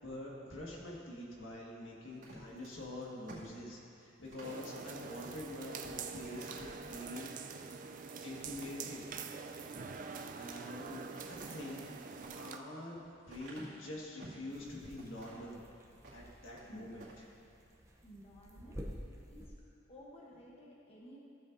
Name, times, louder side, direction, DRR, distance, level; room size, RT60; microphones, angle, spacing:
voice 1, 0.0-7.7 8.2-9.0 10.3-15.6 16.1-17.1, left 1 dB, 80° left, -4 dB, 1.8 m, -46 dB
sound 1, 2.1-4.6 5.2-5.4 5.7-5.8 6.3-7.2 7.7-8.2 10.0-10.7 11.1-14.5 15.0-15.5 15.9-16.7 16.9-17.2, right 2 dB, 80° right, 2.3 m, -54 dB
sound 2, 4.4-12.6, right 5 dB, 40° right, 0.4 m, -45 dB
sound 3, 14.5-19.5, equal, 15° right, 0.7 m, -51 dB
voice 2, 18.0-18.9 19.3-19.6 19.9-21.2, equal, 30° left, -4 dB, 1.0 m, -55 dB
15.0 x 7.3 x 2.7 m, 2.5 s
head